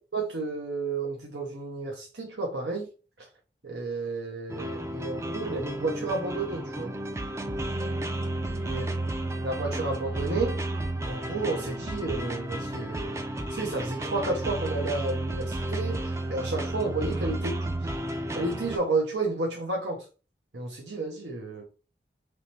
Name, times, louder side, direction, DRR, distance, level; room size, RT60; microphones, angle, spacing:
voice 1, 0.1-2.9 3.6-6.9 8.7-8.8 9.4-10.6 11.0-13.2 13.5-18.1 18.3-20.0 20.5-21.6, right 3 dB, 90° right, 1.0 m, -31 dB
sound 1, 4.5-18.8, right 1 dB, 15° right, 0.4 m, -32 dB
3.6 x 3.2 x 4.3 m
head